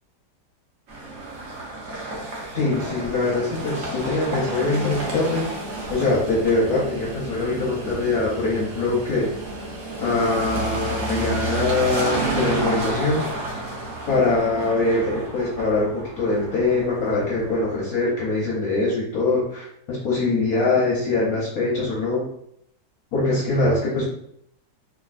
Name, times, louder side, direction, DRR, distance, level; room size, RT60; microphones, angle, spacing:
sound 1, 0.9-17.9, right 2 dB, 65° right, 0.7 m, -31 dB
voice 1, 2.5-5.5 5.9-9.3 10.0-13.2 14.1-22.3 23.1-24.0, left 3 dB, 65° left, -4 dB, 0.9 m, -23 dB
3.3 x 2.3 x 2.3 m, 0.70 s
omnidirectional pair, 2.1 m